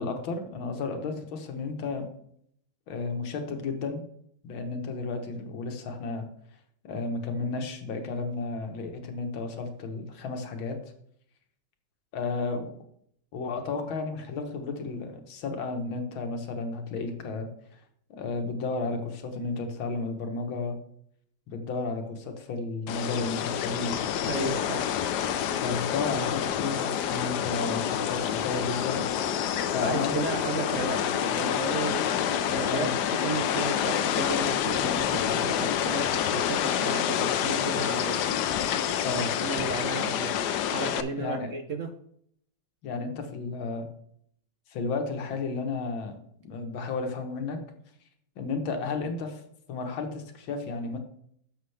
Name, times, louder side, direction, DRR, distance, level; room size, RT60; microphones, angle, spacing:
voice 1, 0.0-2.1 2.9-4.0 4.4-6.3 6.8-10.8 12.1-12.7 13.3-17.5 18.1-20.8 21.5-24.0 25.6-29.0 29.7-30.2 32.7-32.9 39.0-39.3 39.9-40.1 41.2-41.5 42.8-43.9 44.7-46.2 46.4-47.6 48.4-49.4 49.7-51.0, left 3 dB, 85° left, 5 dB, 1.9 m, -32 dB
sound 1, 22.9-41.0, left 9 dB, 70° left, 1.1 m, -28 dB
voice 2, 24.2-24.9 29.8-38.2 39.2-40.4 40.7-41.9, right 4 dB, 60° right, 6 dB, 0.8 m, -34 dB
11.0 x 7.0 x 3.3 m, 0.68 s
omnidirectional pair, 2.1 m